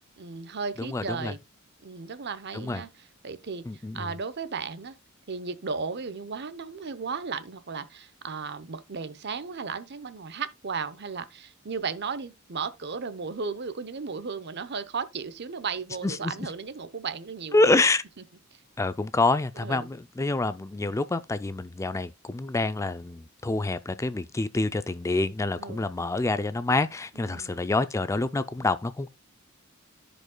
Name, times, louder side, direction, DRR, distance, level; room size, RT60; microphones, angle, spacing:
voice 1, 0.2-1.4 1.8-3.7 3.9-5.0 5.3-17.7 19.6-19.9 25.6-25.9 27.1-27.6, right 5 dB, 55° right, 0.8 m, -35 dB
voice 2, 0.8-1.3 2.5-2.8 3.6-4.2 16.0-16.5 17.5-18.0 18.8-29.1, left 2 dB, 15° left, 0.3 m, -27 dB
14.5 x 5.1 x 2.2 m
head